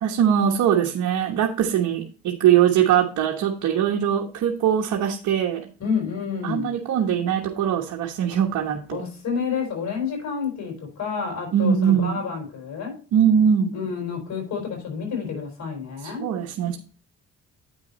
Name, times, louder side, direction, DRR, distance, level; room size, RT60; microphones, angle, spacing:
voice 1, 0.0-5.7 6.4-9.0 11.5-12.2 13.1-13.8 16.0-16.8, right 9 dB, 75° right, 1 dB, 1.2 m, -21 dB
voice 2, 5.8-6.7 8.9-12.9 13.7-16.2, left 6 dB, 65° left, 3 dB, 4.5 m, -29 dB
9.1 x 6.2 x 4.1 m, 0.37 s
cardioid pair, 90°, 30 cm